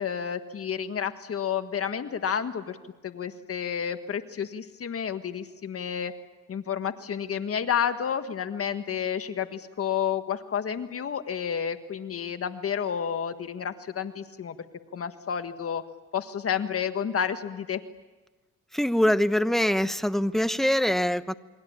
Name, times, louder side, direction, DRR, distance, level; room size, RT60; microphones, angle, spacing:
voice 1, 0.0-2.8 3.0-6.1 6.5-14.6 14.9-15.8 16.1-17.8, left 8 dB, 50° left, 8 dB, 1.6 m, -30 dB
voice 2, 18.7-21.3, equal, ahead, 11 dB, 1.1 m, -24 dB
29.0 x 23.0 x 8.7 m, 1.2 s
cardioid pair, 90°, 30 cm